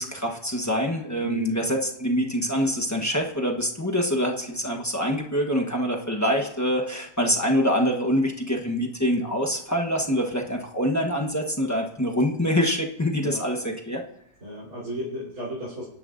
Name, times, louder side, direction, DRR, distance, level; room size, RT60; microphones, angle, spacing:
voice 1, 0.0-14.0, equal, 15° left, 0 dB, 0.7 m, -25 dB
voice 2, 1.2-1.6 13.2-13.4 14.4-15.8, equal, 50° right, -8 dB, 4.0 m, -33 dB
25.0 x 11.0 x 2.6 m, 0.78 s
omnidirectional pair, 1.9 m